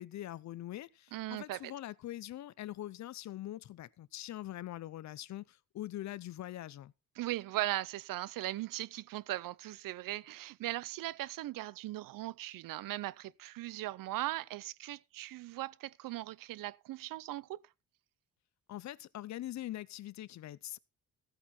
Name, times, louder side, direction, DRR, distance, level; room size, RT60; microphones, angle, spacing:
voice 1, 0.0-6.9 18.7-20.8, left 14 dB, 55° left, 0.6 m, -43 dB
voice 2, 1.1-1.7 7.2-17.6, right 16 dB, 75° right, 0.6 m, -39 dB
15.5 x 8.9 x 4.3 m
cardioid pair, 150°, 33 cm